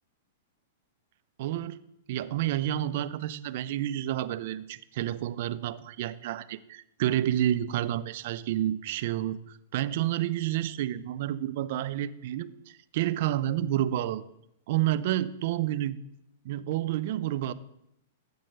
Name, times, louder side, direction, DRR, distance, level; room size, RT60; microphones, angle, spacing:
voice 1, 1.4-1.8 2.1-12.5 12.9-14.3 14.7-16.0 16.4-17.5, right 12 dB, 55° right, 14 dB, 0.5 m, -29 dB
14.5 x 5.3 x 3.4 m, 0.80 s
hypercardioid pair, 105°, 0 cm